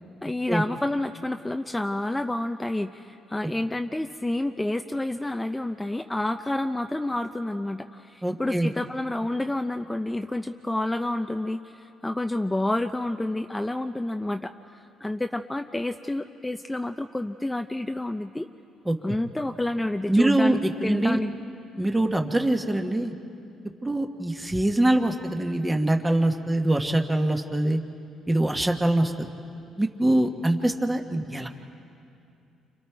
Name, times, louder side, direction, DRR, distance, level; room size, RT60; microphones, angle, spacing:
voice 1, 0.2-18.5 19.0-21.3, left 1 dB, 10° left, 6 dB, 0.5 m, -29 dB
voice 2, 8.2-8.7 18.8-19.1 20.1-21.2 21.8-23.1 23.8-27.8 28.3-29.3 29.8-31.5, right 1 dB, 10° right, 4 dB, 1.3 m, -23 dB
30.0 x 25.5 x 4.6 m, 2.6 s
cardioid pair, 105°, 0 cm